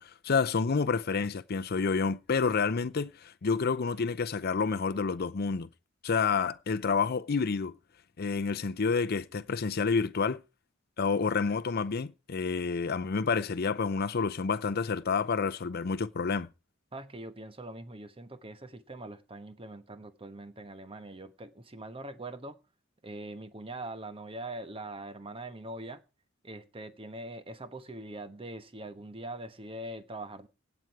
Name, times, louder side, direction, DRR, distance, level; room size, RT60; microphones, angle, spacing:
voice 1, 0.0-5.7 6.0-7.7 8.2-10.4 11.0-16.5, left 5 dB, 50° left, 0.6 m, -29 dB
voice 2, 16.9-22.6 23.0-26.0 26.4-30.5, right 2 dB, 30° right, 1.1 m, -42 dB
17.0 x 8.0 x 4.7 m
head